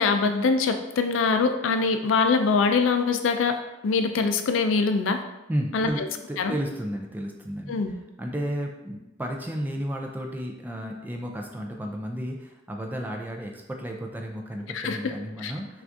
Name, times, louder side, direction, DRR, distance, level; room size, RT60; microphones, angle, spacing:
voice 1, 0.0-3.6 3.8-5.2 5.7-6.1 6.4-6.5 7.7-7.9 14.7-15.0 15.4-15.5, left 4 dB, 85° left, 7 dB, 0.4 m, -23 dB
voice 2, 5.5-6.0 6.3-15.8, equal, 10° right, 1 dB, 0.3 m, -33 dB
5.8 x 2.4 x 2.6 m, 0.98 s
head